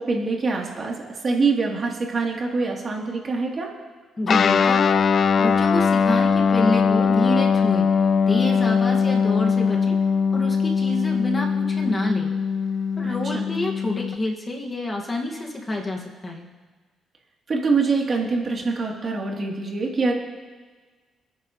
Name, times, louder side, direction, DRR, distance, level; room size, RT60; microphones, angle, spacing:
voice 1, 0.0-3.7 13.0-13.5 17.5-20.1, right 4 dB, 40° right, -2 dB, 3.2 m, -24 dB
voice 2, 4.2-7.9 8.3-10.0 10.3-12.3 13.0-16.5, left 1 dB, 25° left, 0 dB, 2.0 m, -28 dB
Guitar, 4.3-14.2, left 6 dB, 50° left, 0.5 m, -21 dB
28.5 x 9.6 x 3.2 m, 1.4 s
cardioid pair, 90°, 0 cm